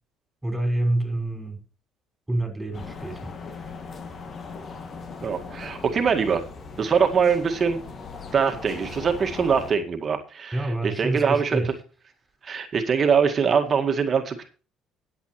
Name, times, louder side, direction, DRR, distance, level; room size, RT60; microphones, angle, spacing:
voice 1, 0.4-1.6 2.3-3.8 10.5-11.7, right 1 dB, 5° right, 5.8 m, -28 dB
sound 1, 2.7-9.7, left 4 dB, 45° left, 2.4 m, -39 dB
voice 2, 5.2-6.4 6.8-7.8 8.3-11.6 12.4-14.5, right 6 dB, 45° right, 2.0 m, -23 dB
20.0 x 8.1 x 3.2 m
hypercardioid pair, 60°, 0 cm